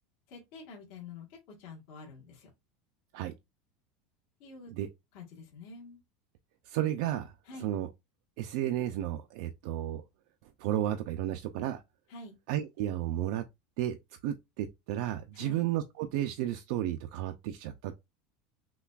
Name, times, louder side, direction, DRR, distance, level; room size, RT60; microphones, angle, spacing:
voice 1, 0.3-2.5 4.4-4.7 5.1-6.0 7.4-7.7 12.1-12.4 15.3-15.6, left 3 dB, 50° left, 1.3 m, -47 dB
voice 2, 6.7-7.3 7.6-7.9 8.4-10.0 10.6-11.8 12.5-13.4 13.8-14.0 14.2-17.9, right 12 dB, 55° right, 0.4 m, -32 dB
5.7 x 2.3 x 2.3 m
supercardioid pair, 175°, 4 cm